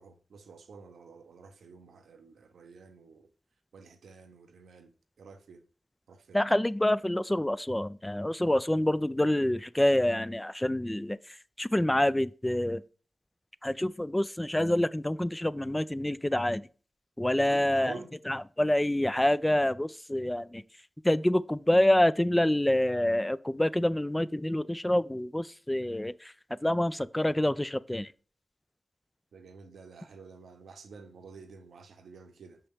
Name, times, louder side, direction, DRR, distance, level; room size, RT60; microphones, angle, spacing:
voice 1, 0.0-3.3 3.7-5.7 6.1-6.4 17.3-18.1 29.3-32.6, right 5 dB, 90° right, 0.7 m, -50 dB
voice 2, 6.3-12.8 13.6-16.7 17.2-17.9 18.3-20.6 21.0-26.3 26.6-28.1, left 1 dB, 15° left, 0.3 m, -27 dB
5.5 x 5.5 x 3.5 m
cardioid pair, 40°, 0 cm